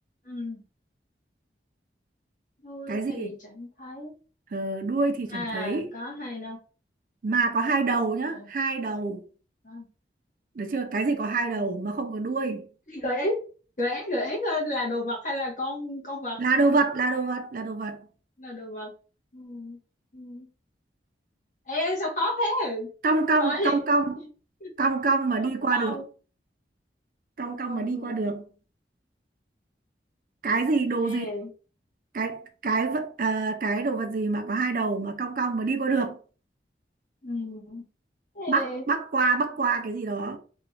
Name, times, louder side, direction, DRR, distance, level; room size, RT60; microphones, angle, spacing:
voice 1, 0.2-0.6 2.6-4.2 5.2-6.6 8.3-8.5 9.6-9.9 11.3-11.7 12.9-13.4 13.8-16.4 18.4-18.9 19.3-19.8 20.1-20.5 21.7-22.9 23.4-24.0 24.6-24.7 25.7-26.0 27.4-28.3 31.0-31.5 37.2-37.8 38.3-38.8, left 1 dB, 45° left, 1.0 m, -32 dB
voice 2, 2.9-3.4 4.5-5.9 7.2-9.2 10.6-12.6 16.4-18.0 23.0-24.2 24.8-26.0 27.4-28.5 30.4-31.3 32.1-36.2 38.5-40.4, right 3 dB, 50° right, 0.4 m, -26 dB
2.9 x 2.3 x 3.1 m
head